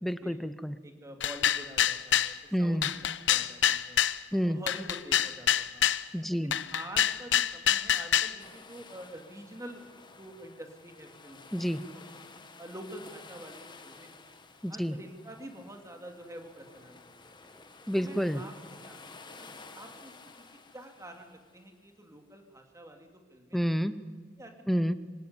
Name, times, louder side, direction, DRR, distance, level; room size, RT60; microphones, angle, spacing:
voice 1, 0.0-0.8 2.5-2.8 4.3-4.6 6.1-6.5 11.5-11.8 14.6-15.0 17.9-18.4 23.5-24.0 24.7-24.9, equal, ahead, 13 dB, 0.8 m, -29 dB
voice 2, 0.8-3.0 3.3-4.0 4.4-5.9 6.4-9.9 10.2-11.7 12.1-12.2 12.6-14.2 14.7-17.4 18.0-18.5 18.8-20.1 20.7-23.6 24.4-24.7, right 1 dB, 15° right, 4 dB, 2.9 m, -47 dB
sound 1, 1.2-2.3 2.8-4.2 4.7-6.0 6.5-8.4, left 10 dB, 70° left, 0.8 m, -26 dB
sound 2, 8.4-21.8, left 3 dB, 25° left, 1.6 m, -52 dB
25.5 x 18.0 x 9.7 m, 1.5 s
head